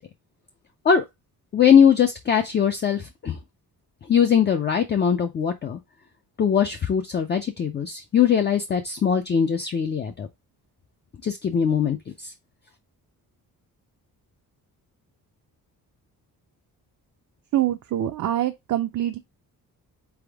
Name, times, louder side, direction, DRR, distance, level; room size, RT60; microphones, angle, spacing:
voice 1, 1.5-3.4 4.1-5.8 6.4-10.3 11.2-12.3, left 7 dB, 30° left, 0.4 m, -21 dB
voice 2, 17.5-19.2, right 12 dB, 55° right, 0.5 m, -25 dB
4.1 x 3.5 x 3.3 m
wide cardioid pair, 175°, 36 cm